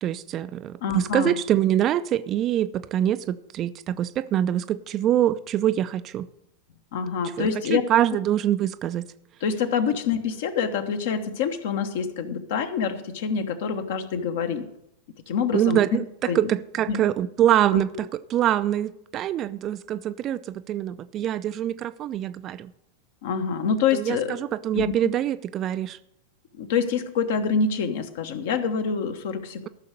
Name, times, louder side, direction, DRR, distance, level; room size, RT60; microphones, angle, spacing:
voice 1, 0.0-6.3 7.4-9.1 15.5-16.0 16.4-17.9 18.3-22.7 23.9-24.2 24.6-26.0, right 11 dB, 30° right, 0.4 m, -24 dB
voice 2, 0.8-1.4 6.9-7.8 9.4-14.7 15.3-15.8 16.2-16.5 16.9-17.0 17.7-17.8 23.2-24.4 24.7-24.9 26.5-29.7, left 6 dB, 55° left, 1.1 m, -26 dB
14.0 x 6.4 x 6.7 m
figure-of-eight pair, 90°, 0 cm